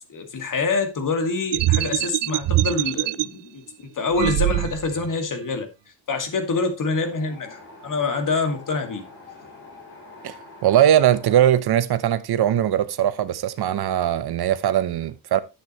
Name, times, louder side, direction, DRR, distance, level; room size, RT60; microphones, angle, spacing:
voice 1, 0.1-3.6 3.9-5.7 6.1-9.0, left 4 dB, 50° left, 2.2 m, -26 dB
sound 1, 1.5-3.3 4.1-5.1, right 16 dB, 85° right, 0.5 m, -23 dB
Wind, 6.8-11.4, left 3 dB, 30° left, 5.5 m, -45 dB
voice 2, 10.6-15.4, right 11 dB, 65° right, 1.0 m, -20 dB
10.5 x 8.5 x 3.1 m
cardioid pair, 125°, 41 cm